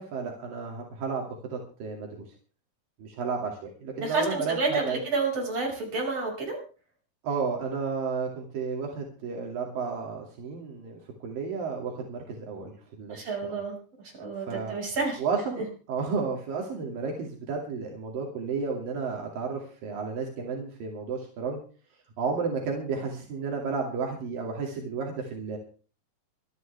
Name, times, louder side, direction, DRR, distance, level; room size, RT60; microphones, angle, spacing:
voice 1, 0.0-2.1 3.0-5.0 7.2-13.6 14.5-14.7 15.2-21.6 22.2-25.6, right 5 dB, 85° right, 0 dB, 4.3 m, -32 dB
voice 2, 4.0-6.6 13.1-13.8 14.2-15.2, right 3 dB, 45° right, 0 dB, 6.9 m, -29 dB
25.0 x 11.0 x 3.5 m, 0.38 s
omnidirectional pair, 3.9 m